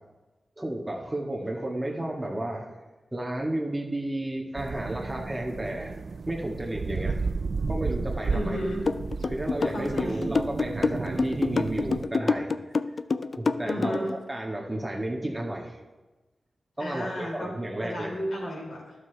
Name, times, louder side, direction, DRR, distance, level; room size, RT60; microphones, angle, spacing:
voice 1, 0.6-2.7 3.1-6.0 6.3-7.2 7.7-8.6 9.3-12.5 13.4-15.8 16.8-18.2, right 1 dB, 15° right, -1 dB, 1.6 m, -32 dB
sound 1, 4.6-12.0, right 4 dB, 65° right, 0.4 m, -33 dB
voice 2, 8.3-8.9 9.6-10.3 13.6-14.1 16.8-17.5 17.8-18.9, equal, 85° left, -2 dB, 3.0 m, -33 dB
sound 2, 8.9-14.1, left 4 dB, 60° left, 0.3 m, -26 dB
12.0 x 6.6 x 3.4 m, 1.2 s
cardioid pair, 60°, 0 cm